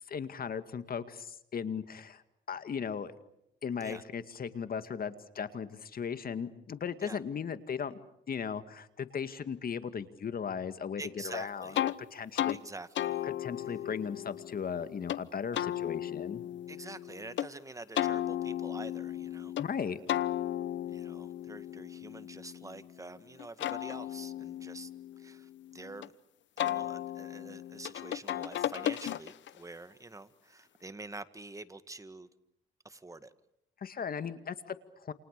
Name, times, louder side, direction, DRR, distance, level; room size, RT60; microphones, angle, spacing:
voice 1, 0.1-2.2 2.5-3.1 3.6-12.6 13.2-16.4 19.6-20.0 33.8-35.1, left 7 dB, 50° left, 11 dB, 2.1 m, -37 dB
voice 2, 11.0-11.8 12.5-13.2 16.7-19.5 20.8-24.9 25.2-26.1 26.6-32.3 32.8-33.3, right 2 dB, 15° right, 12 dB, 1.9 m, -47 dB
sound 1, 11.7-12.0 12.4-12.6 13.0-15.2 15.5-17.5 18.0-19.7 20.1-23.0 23.4-26.1 26.6-29.6, left 12 dB, 70° left, 1.0 m, -35 dB
29.0 x 28.5 x 6.8 m, 0.79 s
cardioid pair, 90°, 20 cm